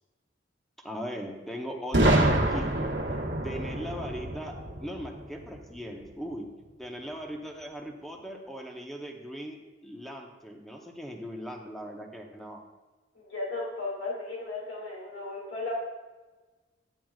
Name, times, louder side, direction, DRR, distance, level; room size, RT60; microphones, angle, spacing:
voice 1, 0.8-2.7 3.4-4.5 4.8-6.5 6.8-12.6, equal, ahead, 1 dB, 0.8 m, -39 dB
Boom, 1.9-5.8, right 1 dB, 80° right, 1.3 m, -27 dB
voice 2, 13.1-15.7, left 2 dB, 65° left, -4 dB, 2.3 m, -35 dB
10.5 x 9.0 x 2.4 m, 1.2 s
head